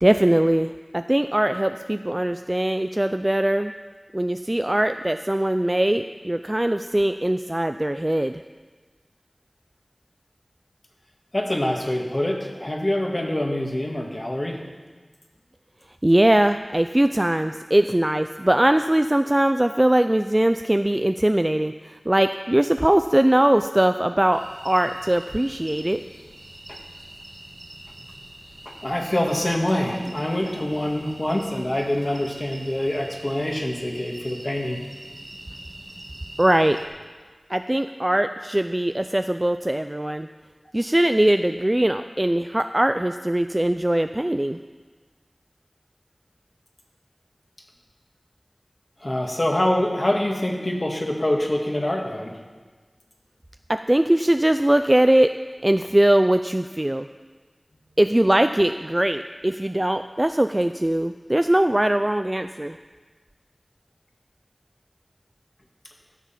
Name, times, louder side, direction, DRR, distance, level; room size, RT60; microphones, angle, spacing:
voice 1, 0.0-3.7 4.1-8.4 16.0-26.0 30.0-30.1 36.4-36.8 37.5-40.3 40.7-44.6 53.7-55.3 55.6-57.1 58.0-62.8, right 1 dB, 25° right, 8 dB, 0.3 m, -21 dB
voice 2, 11.3-14.6 26.7-26.8 28.7-34.8 49.0-52.4, left 1 dB, 45° left, 1 dB, 1.7 m, -25 dB
sound 1, 24.3-36.9, right 1 dB, 70° right, 1.7 m, -43 dB
13.5 x 7.3 x 5.8 m, 1.4 s
wide cardioid pair, 50°, 0 cm